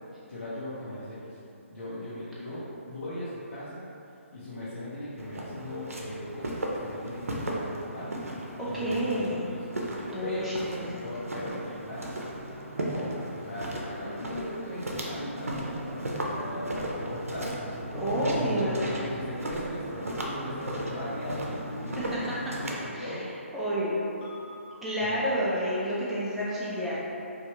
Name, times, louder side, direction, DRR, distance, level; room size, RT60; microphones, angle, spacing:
voice 1, 0.3-1.4 1.7-3.8 4.3-8.1 8.6-9.6 10.2-10.6 11.0-12.1 12.9-18.0 18.2-22.0 22.3-23.2 25.0-25.2, left 1 dB, 75° left, -12 dB, 0.9 m, -38 dB
Walk footsteps, 5.2-22.9, right 1 dB, 85° right, 0.5 m, -36 dB
voice 2, 8.6-9.4 10.1-11.0 11.4-11.6 17.9-18.8 22.0-22.5 22.9-23.2 23.5-23.9 24.8-27.0, equal, ahead, -10 dB, 0.5 m, -30 dB
sound 1, 16.4-19.5 20.0-22.6 23.7-24.7, equal, 45° left, 1.0 m, -45 dB
3.3 x 2.4 x 2.8 m, 2.8 s
figure-of-eight pair, 145°, 7 cm